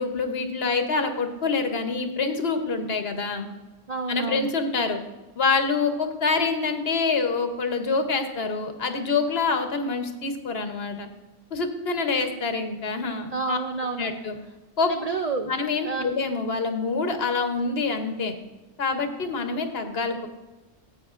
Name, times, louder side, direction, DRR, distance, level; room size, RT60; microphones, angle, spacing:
voice 1, 0.0-3.5 4.1-5.0 5.4-11.1 11.5-13.6 14.0-14.4 14.8-14.9 15.4-18.4 18.8-20.3, left 4 dB, 55° left, 7 dB, 1.1 m, -26 dB
voice 2, 3.9-4.5 13.3-14.1 14.9-15.5 15.8-16.0, right 4 dB, 55° right, 4 dB, 0.4 m, -29 dB
15.5 x 8.3 x 2.5 m, 1.2 s
omnidirectional pair, 1.3 m